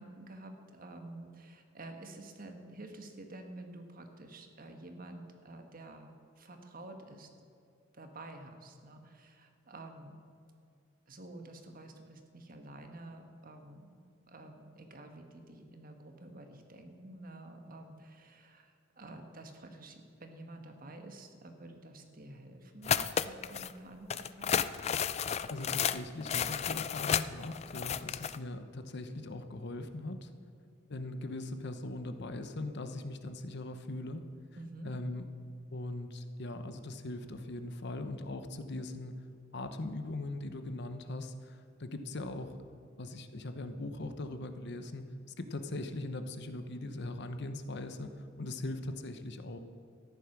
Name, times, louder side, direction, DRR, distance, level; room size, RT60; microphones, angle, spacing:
voice 1, 0.0-7.3 7.9-10.2 11.1-14.0 14.3-24.8 34.6-34.9, right 2 dB, 45° right, 5 dB, 1.5 m, -49 dB
sound 1, 22.8-23.7 24.1-28.4, left 8 dB, 35° left, 0.4 m, -32 dB
voice 2, 25.5-30.3 30.9-34.3 34.8-35.2 35.7-39.1 39.5-42.6 43.0-49.6, left 2 dB, 60° left, 9 dB, 0.9 m, -40 dB
13.5 x 11.0 x 6.1 m, 2.4 s
head